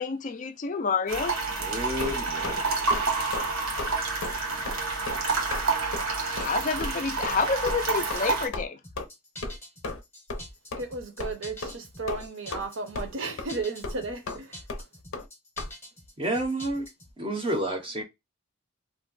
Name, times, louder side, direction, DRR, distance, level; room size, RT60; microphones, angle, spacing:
voice 1, 0.0-1.3 6.4-8.8, left 5 dB, 35° left, 0.4 m, -28 dB
sound 1, 1.1-8.5, right 3 dB, 85° right, 1.0 m, -29 dB
voice 2, 1.6-2.9 16.2-16.9 17.2-18.0, right 1 dB, 25° right, 0.6 m, -30 dB
sound 2, 2.0-2.6 2.9-3.1 3.3-3.5 3.8-3.9 4.2-4.4 4.7-4.8 5.1-5.2 5.5-5.7 5.9-6.0 6.4-6.5 6.8-6.9 7.2-7.4 7.7-7.8 8.1-8.2 8.5-8.6 9.0-9.1 9.4-9.6 9.8-10.0 10.3-10.4 10.7-10.8 11.2-11.3 11.6-11.8 12.1-12.6 12.9-13.1 13.4-13.5 13.8-14.0 14.3-14.4 14.7-14.8 15.1-15.3 15.6-15.7, left 3 dB, 85° left, 0.6 m, -34 dB
sound 3, 8.8-17.1, left 1 dB, 10° left, 0.7 m, -46 dB
voice 3, 10.8-14.6, right 3 dB, 65° right, 0.7 m, -34 dB
2.5 x 2.1 x 3.9 m
head